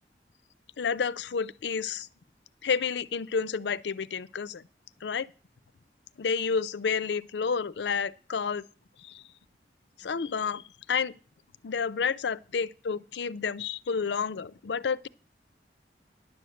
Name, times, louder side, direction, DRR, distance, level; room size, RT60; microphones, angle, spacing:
voice 1, 0.8-2.1 2.6-4.6 5.0-5.3 6.2-8.6 9.0-9.2 10.0-11.2 11.6-15.1, left 6 dB, 80° left, 0.5 m, -30 dB
10.5 x 6.4 x 7.8 m
head